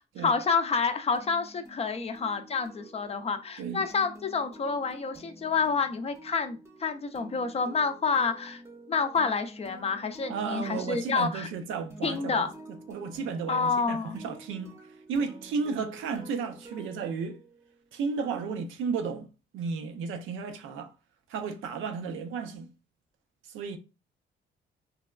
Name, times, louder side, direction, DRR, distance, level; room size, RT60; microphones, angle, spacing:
voice 1, 0.2-8.6 8.9-11.5 12.0-12.5 13.5-14.2, left 5 dB, 30° left, 0.4 m, -28 dB
sound 1, 1.1-17.8, right 1 dB, 15° right, 0.7 m, -50 dB
voice 2, 10.3-12.5 12.9-14.7 15.1-17.4 17.9-19.3 19.5-20.9 21.3-22.7 23.5-23.8, right 5 dB, 80° right, 0.5 m, -33 dB
3.3 x 2.1 x 2.2 m
cardioid pair, 90°, 20 cm